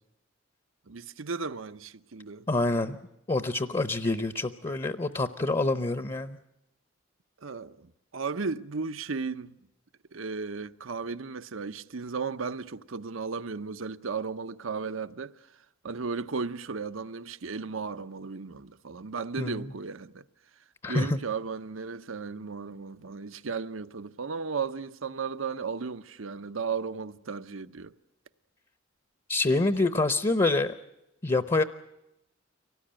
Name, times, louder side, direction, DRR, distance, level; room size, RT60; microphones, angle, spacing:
voice 1, 0.9-2.4 7.4-9.6 10.1-15.3 15.8-20.2 20.9-27.9, right 5 dB, 85° right, 0.8 m, -35 dB
voice 2, 2.5-3.0 3.3-6.4 19.4-19.7 20.8-21.2 29.3-30.7 31.2-31.6, left 2 dB, 25° left, 0.8 m, -26 dB
24.5 x 18.5 x 8.8 m
head